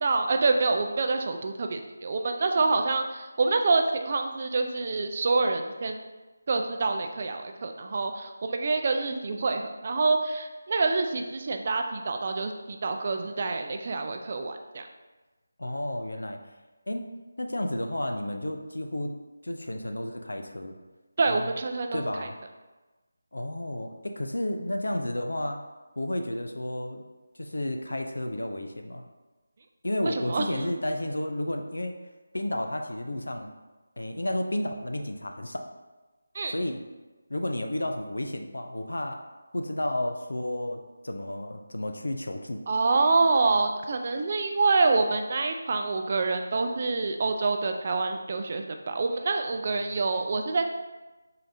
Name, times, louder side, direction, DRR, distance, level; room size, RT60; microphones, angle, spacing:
voice 1, 0.0-6.0 6.5-14.8 21.2-22.3 30.0-30.7 36.3-36.5 42.7-50.7, right 3 dB, 40° right, 5 dB, 0.3 m, -26 dB
voice 2, 15.6-16.4 16.9-17.1 17.4-19.2 19.4-20.8 21.3-21.5 21.9-22.4 23.3-25.6 26.0-27.0 27.4-29.0 29.8-32.0 32.3-33.5 34.0-35.6 36.5-36.9 37.3-39.2 39.5-42.6, left 1 dB, 80° left, 4 dB, 0.4 m, -32 dB
3.8 x 3.3 x 2.6 m, 1.2 s
figure-of-eight pair, 160°, 0 cm